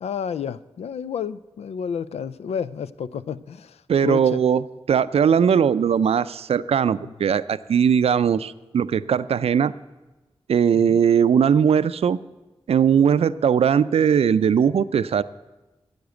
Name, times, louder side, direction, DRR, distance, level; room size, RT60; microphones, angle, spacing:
voice 1, 0.0-4.4 7.0-7.1 10.7-11.0, left 7 dB, 85° left, 17 dB, 0.4 m, -31 dB
voice 2, 3.9-9.7 10.5-12.2 12.7-15.2, right 7 dB, 75° right, 16 dB, 0.4 m, -19 dB
10.5 x 7.9 x 8.2 m, 1.1 s
cardioid pair, 45°, 10 cm